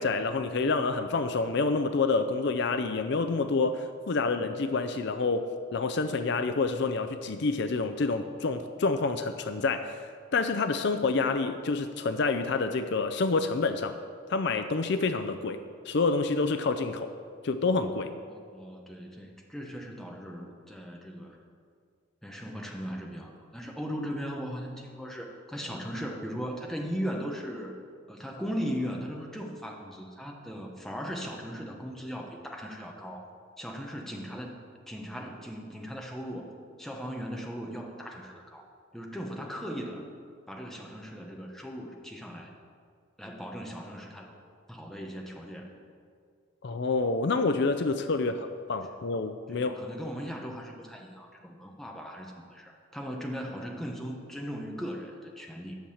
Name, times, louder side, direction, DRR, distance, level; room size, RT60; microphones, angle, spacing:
voice 1, 0.0-10.1 10.3-13.9 14.3-15.6 15.9-17.1 17.4-18.1 46.6-49.8, left 3 dB, 55° left, 8 dB, 0.5 m, -28 dB
voice 2, 18.3-21.4 22.2-27.7 28.1-33.3 33.6-34.6 34.9-36.5 36.8-38.7 38.9-40.0 40.5-42.5 43.2-44.3 44.7-45.7 49.5-55.8, equal, ahead, 0 dB, 1.0 m, -38 dB
10.5 x 6.3 x 7.1 m, 2.1 s
head